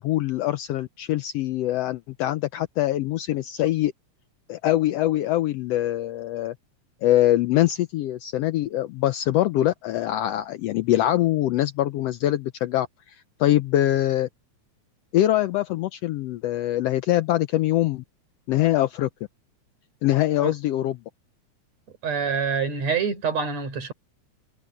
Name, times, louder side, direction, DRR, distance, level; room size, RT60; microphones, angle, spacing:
voice 1, 0.0-3.9 4.5-6.5 7.0-13.1 13.4-14.3 15.1-18.0 18.5-19.1 20.0-21.0, left 14 dB, 80° left, 1.5 m, -23 dB
voice 2, 22.0-23.9, right 6 dB, 65° right, 5.2 m, -26 dB
omnidirectional pair, 3.3 m